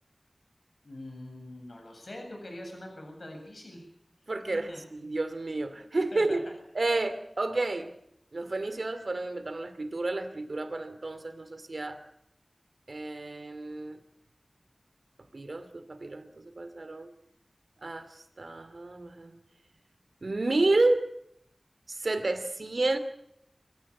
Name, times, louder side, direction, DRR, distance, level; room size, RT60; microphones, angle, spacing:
voice 1, 0.8-3.8 4.5-4.8 6.1-6.4, left 1 dB, 70° left, 3 dB, 7.9 m, -43 dB
voice 2, 4.3-4.7 5.0-6.4 6.7-7.9 8.3-12.0 12.9-14.0 15.3-17.1 17.8-18.1 18.4-19.4 20.2-21.0 21.9-23.0, right 2 dB, 70° right, 11 dB, 2.4 m, -30 dB
26.5 x 14.5 x 8.5 m, 0.76 s
wide cardioid pair, 60°, 0 cm